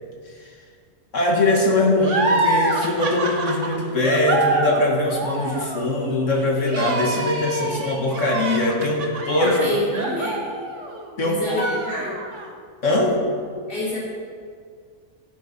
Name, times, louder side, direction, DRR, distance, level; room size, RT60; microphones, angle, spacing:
voice 1, 1.1-9.6 11.2-11.7 12.8-13.2, left 2 dB, 65° left, -1 dB, 2.1 m, -21 dB
sound 1, 2.0-11.1 11.4-12.5, right 2 dB, 60° right, 1.5 m, -26 dB
voice 2, 9.4-10.4 11.2-12.2 13.7-14.0, left 1 dB, 40° left, -8 dB, 4.0 m, -27 dB
13.5 x 12.0 x 4.3 m, 2.1 s
omnidirectional pair, 1.4 m